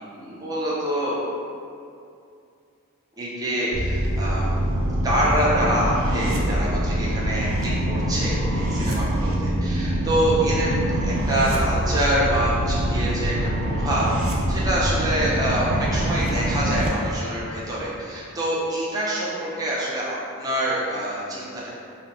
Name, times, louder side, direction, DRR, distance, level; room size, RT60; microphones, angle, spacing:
voice 1, 0.2-1.2 3.2-4.6 5.0-13.3 13.6-14.1 14.5-21.7, right 1 dB, 20° right, -7 dB, 0.4 m, -26 dB
sound 1, 3.7-16.9, right 1 dB, 80° right, 0.4 m, -24 dB
2.8 x 2.1 x 2.6 m, 2.5 s
head